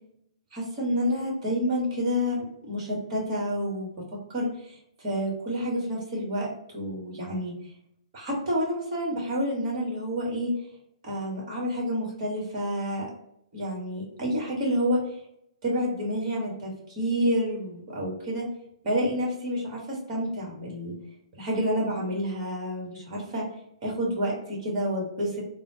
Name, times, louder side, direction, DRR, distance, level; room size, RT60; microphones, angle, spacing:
voice 1, 0.5-3.9 4.3-7.5 8.1-10.5 11.0-13.1 13.5-15.0 15.6-18.4 18.8-21.0 21.3-23.4 23.8-25.4, equal, 30° right, -2 dB, 1.4 m, -29 dB
3.6 x 2.1 x 2.8 m, 0.75 s
figure-of-eight pair, 120°, 3 cm